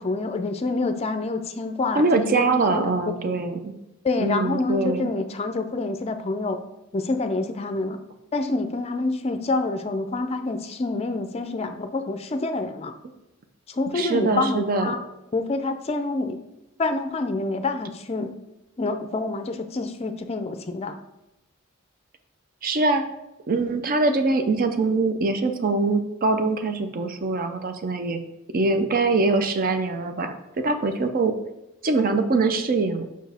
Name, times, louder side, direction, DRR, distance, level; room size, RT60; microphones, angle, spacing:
voice 1, 0.0-3.4 4.0-6.6 6.9-8.0 8.3-12.9 13.7-15.0 15.3-16.4 16.8-18.3 18.8-21.0, left 3 dB, 30° left, 8 dB, 0.4 m, -27 dB
voice 2, 2.0-3.7 4.2-5.1 13.9-14.9 22.6-23.1 23.5-28.2 28.5-30.4 30.6-31.3 31.8-33.0, right 3 dB, 40° right, 7 dB, 0.5 m, -23 dB
6.2 x 4.5 x 3.4 m, 0.93 s
head